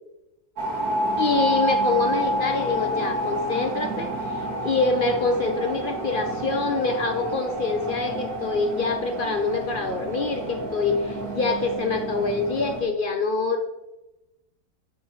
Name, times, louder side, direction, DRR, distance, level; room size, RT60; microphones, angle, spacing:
sound 1, 0.6-12.8, right 1 dB, 70° right, 2.1 m, -29 dB
voice 1, 1.2-4.1 4.6-13.7, left 4 dB, 45° left, 5 dB, 0.7 m, -25 dB
9.3 x 4.6 x 5.7 m, 0.96 s
omnidirectional pair, 1.7 m